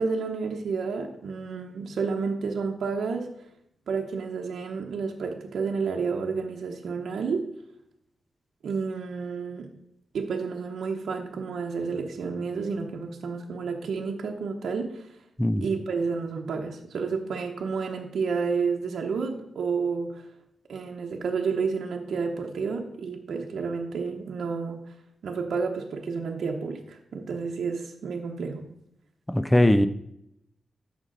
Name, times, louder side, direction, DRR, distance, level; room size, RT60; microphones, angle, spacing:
voice 1, 0.0-3.3 3.9-7.5 8.6-9.7 10.1-15.1 15.6-20.2 20.7-24.8 25.2-28.7, right 5 dB, 80° right, 0.8 m, -30 dB
voice 2, 29.3-29.9, left 1 dB, 5° left, 0.3 m, -20 dB
13.0 x 5.2 x 3.9 m
wide cardioid pair, 160°, 0 cm